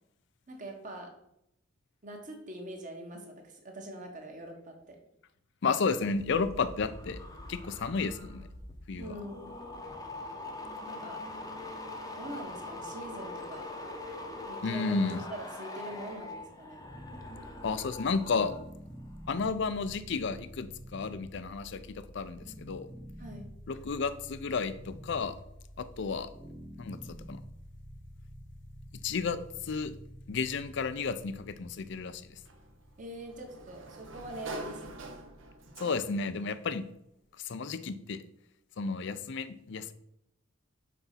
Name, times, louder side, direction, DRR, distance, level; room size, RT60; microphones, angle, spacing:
voice 1, 0.5-1.1 2.0-5.0 9.0-9.5 10.8-11.2 12.1-13.7 14.5-16.9 23.2-23.5 33.0-35.0, right 1 dB, 40° right, 2 dB, 1.3 m, -43 dB
voice 2, 5.6-7.2 7.5-8.5 8.9-9.1 14.1-14.2 14.6-15.2 17.6-18.6 19.3-22.9 23.7-25.4 25.8-26.3 26.8-27.4 29.0-29.9 30.3-32.4 35.8-36.8 37.4-38.2 38.8-39.9, left 4 dB, 60° left, 13 dB, 0.5 m, -32 dB
sound 1, 6.0-18.7 19.0-19.4, left 2 dB, 20° left, 0.8 m, -43 dB
sound 2, 16.8-35.8, equal, 10° right, 0.5 m, -49 dB
Sliding door, 32.4-36.4, right 2 dB, 65° right, 0.9 m, -45 dB
5.9 x 4.1 x 5.7 m, 0.79 s
head